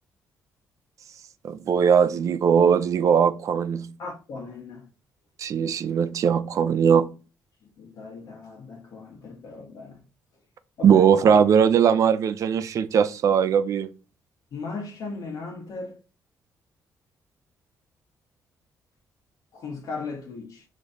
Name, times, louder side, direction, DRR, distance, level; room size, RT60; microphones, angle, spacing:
voice 1, 1.4-3.9 5.4-7.1 10.8-13.9, right 7 dB, 55° right, 0.4 m, -20 dB
voice 2, 4.0-4.8 7.8-10.0 10.8-11.0 14.5-16.0 19.5-20.6, left 4 dB, 65° left, 1.5 m, -37 dB
4.9 x 3.1 x 2.7 m
cardioid pair, 115°, 6 cm